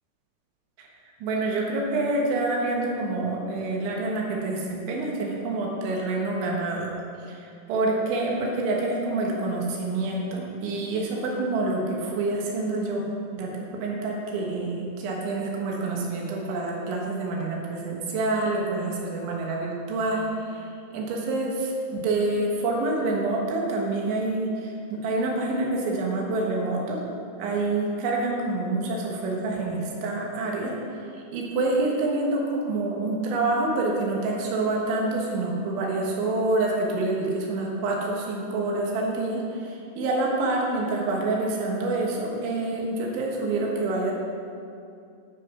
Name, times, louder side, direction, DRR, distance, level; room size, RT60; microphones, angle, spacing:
voice 1, 1.2-6.9 7.3-20.7 20.9-27.0 27.4-30.8 31.1-44.1, right 2 dB, 85° right, -1 dB, 3.8 m, -27 dB
10.5 x 6.5 x 5.8 m, 2.5 s
omnidirectional pair, 5.3 m